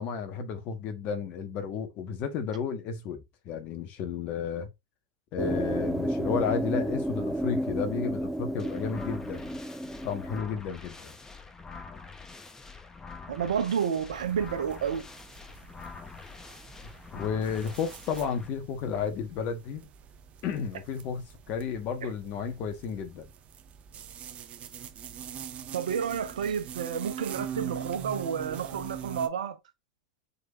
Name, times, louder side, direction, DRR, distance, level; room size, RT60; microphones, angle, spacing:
voice 1, 0.0-3.2 3.4-4.7 5.3-9.6 10.0-11.1 17.1-19.9 20.4-23.2, left 6 dB, 50° left, 1.4 m, -32 dB
sound 1, 5.4-10.4, right 1 dB, 5° right, 0.5 m, -31 dB
sound 2, 8.6-18.5, left 4 dB, 15° left, 0.9 m, -46 dB
voice 2, 13.3-15.0 22.0-22.1 25.7-29.6, right 7 dB, 80° right, 0.9 m, -30 dB
sound 3, 14.1-29.3, right 8 dB, 35° right, 0.7 m, -44 dB
5.0 x 4.1 x 2.5 m
hypercardioid pair, 95°, 4 cm